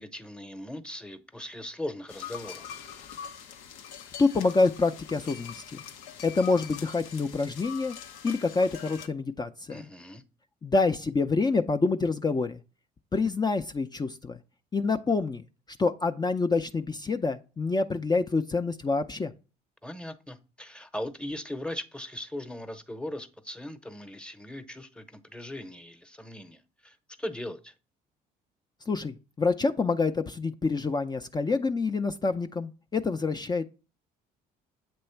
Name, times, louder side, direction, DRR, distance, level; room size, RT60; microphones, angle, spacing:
voice 1, 0.0-2.6 9.7-10.2 19.8-27.7, left 1 dB, 5° left, 0.8 m, -39 dB
sound 1, 2.1-9.1, left 8 dB, 85° left, 0.6 m, -43 dB
voice 2, 4.2-5.8 6.2-8.0 8.2-9.8 10.6-12.6 13.1-14.4 14.7-15.4 15.8-19.3 28.9-33.6, left 3 dB, 20° left, 0.5 m, -27 dB
7.8 x 3.0 x 4.4 m
supercardioid pair, 70°, 19 cm